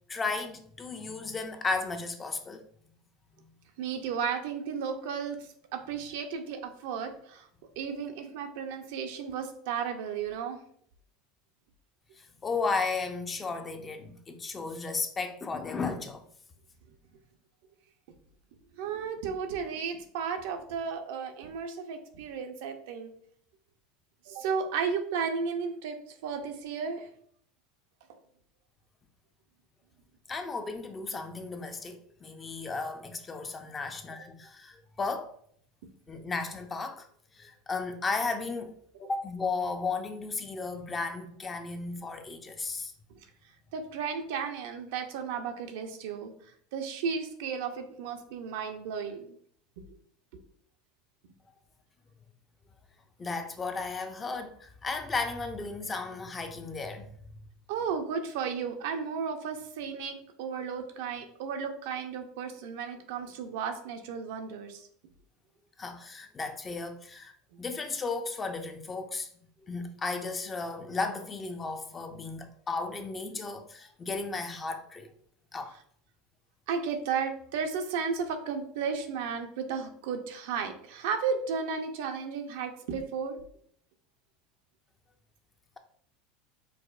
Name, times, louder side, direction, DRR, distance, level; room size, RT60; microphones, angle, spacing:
voice 1, 0.1-2.7 12.2-16.2 30.3-35.3 36.1-37.1 37.3-38.7 39.0-42.9 53.2-57.1 65.8-67.3 67.6-69.3 69.7-75.1 75.5-75.8, left 4 dB, 25° left, 0.5 m, -34 dB
voice 2, 3.8-5.4 5.7-7.5 7.8-10.6 18.8-23.1 24.3-26.0 26.2-27.1 36.1-36.2 43.7-46.3 46.7-49.3 57.7-64.8 67.5-67.6 76.7-83.4, right 6 dB, 75° right, 0.5 m, -34 dB
4.7 x 2.0 x 2.4 m
hypercardioid pair, 100°, 0 cm